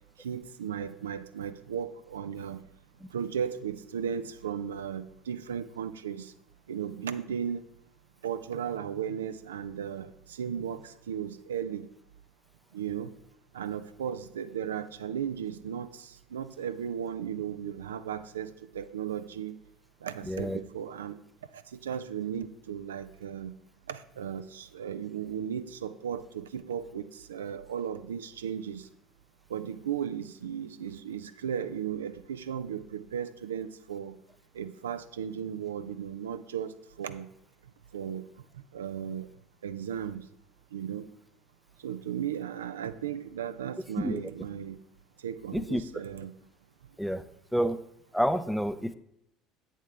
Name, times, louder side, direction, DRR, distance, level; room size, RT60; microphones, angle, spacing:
voice 1, 0.2-2.6 3.1-6.3 6.7-7.7 8.2-11.9 12.7-13.1 13.5-19.6 20.0-21.2 21.5-23.5 23.9-28.9 29.5-34.2 34.5-37.3 37.9-38.3 38.7-39.3 39.6-40.2 40.7-41.1 41.8-44.8 45.2-46.3, right 8 dB, 75° right, 12 dB, 0.4 m, -36 dB
voice 2, 20.3-20.6 44.0-44.2 45.5-45.8 47.0-47.2 47.5-47.8 48.1-48.9, equal, ahead, 13 dB, 0.5 m, -28 dB
8.4 x 7.3 x 3.3 m, 0.79 s
figure-of-eight pair, 60°, 0 cm